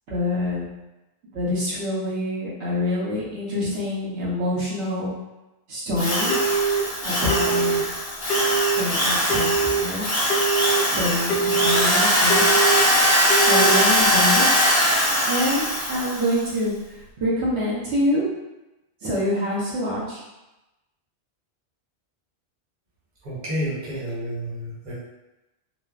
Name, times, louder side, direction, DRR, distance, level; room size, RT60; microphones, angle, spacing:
voice 1, 0.1-0.7 1.3-5.1 5.7-6.4 7.0-7.8 8.8-10.0 10.8-12.4 13.5-14.5 15.3-16.7 17.2-18.2 19.0-20.2, left 1 dB, 85° right, -7 dB, 1.1 m, -26 dB
Drill, 6.0-16.4, equal, 50° left, 1.0 m, -21 dB
Telephone, 6.3-6.8 7.3-7.8 8.3-8.8 9.3-9.8 10.3-10.8 11.3-11.8 12.3-12.8 13.3-13.8, right 5 dB, 75° left, 0.9 m, -23 dB
voice 2, 23.2-24.9, equal, 45° right, -8 dB, 0.9 m, -30 dB
3.0 x 2.1 x 2.3 m, 0.99 s
omnidirectional pair, 1.1 m